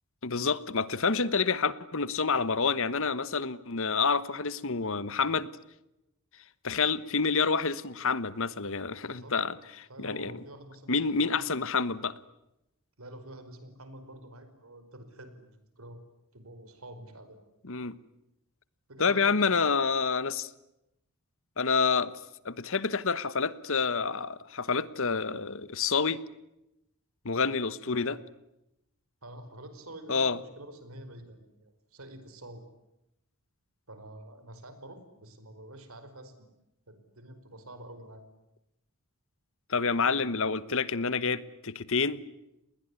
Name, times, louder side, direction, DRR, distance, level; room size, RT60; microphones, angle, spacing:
voice 1, 0.2-5.5 6.6-10.4 10.9-12.1 17.7-17.9 19.0-20.5 21.6-22.1 22.4-26.2 27.2-28.2 30.1-30.4 39.7-42.2, left 5 dB, 65° left, 16 dB, 1.3 m, -28 dB
voice 2, 9.0-9.5 9.9-11.4 13.0-16.0 16.3-17.4 18.9-19.5 27.8-28.1 29.2-32.6 33.9-36.5 36.9-38.2, right 1 dB, 70° right, 10 dB, 5.0 m, -48 dB
29.5 x 20.5 x 9.8 m, 0.88 s
head